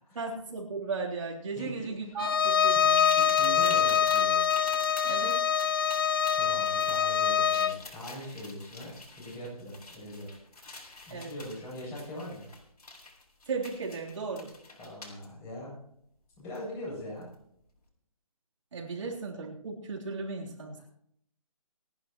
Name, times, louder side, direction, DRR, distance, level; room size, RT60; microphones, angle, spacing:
voice 1, 0.2-3.0 5.0-5.4 11.1-11.3 13.5-14.5 18.7-20.8, right 4 dB, 55° right, -3 dB, 3.5 m, -36 dB
voice 2, 1.5-2.1 2.7-2.9 3.1-4.4 6.3-10.3 11.1-12.5 14.8-15.7 16.4-17.3 19.0-19.1, equal, 15° left, -6 dB, 7.6 m, -41 dB
Bowed string instrument, 2.2-7.8, left 8 dB, 40° left, 0.5 m, -25 dB
sound 1, 2.9-15.3 16.5-16.6 17.2-17.3, left 2 dB, 90° left, 6.2 m, -48 dB
28.5 x 11.0 x 3.1 m, 0.69 s
hypercardioid pair, 165°, 19 cm